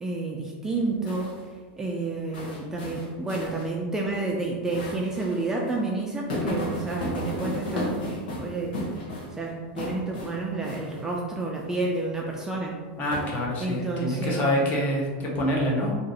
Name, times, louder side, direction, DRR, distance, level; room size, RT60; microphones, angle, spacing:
voice 1, 0.0-1.4 1.8-8.0 8.4-8.8 9.4-12.7 13.6-14.5, right 3 dB, 10° right, -2 dB, 0.3 m, -30 dB
sound 1, 0.6-1.4 2.3-3.6 4.0-4.1 4.7-5.4 5.6-5.7 6.3-9.4 9.8-10.3 10.6-11.0 13.1-13.7, left 1 dB, 85° left, 1.1 m, -33 dB
voice 2, 13.0-16.0, left 1 dB, 35° left, -1 dB, 0.8 m, -26 dB
2.8 x 2.5 x 4.0 m, 1.5 s
supercardioid pair, 150°, 5 cm